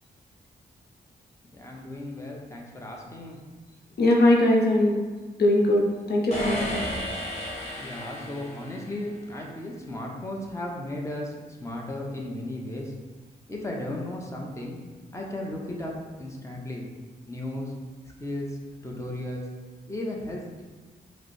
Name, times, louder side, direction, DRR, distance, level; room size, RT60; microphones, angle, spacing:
voice 1, 1.5-3.4 7.8-12.9 13.5-14.8 15.1-15.9 16.2-16.8 17.3-17.7 18.2-19.4 19.9-20.6, left 1 dB, 15° left, -1 dB, 0.9 m, -35 dB
voice 2, 4.0-5.0 5.4-6.8, left 1 dB, 75° left, -1 dB, 0.7 m, -21 dB
sound 1, 6.3-9.1, equal, 40° left, 1.4 m, -33 dB
4.8 x 2.1 x 4.7 m, 1.3 s
cardioid pair, 65°, 17 cm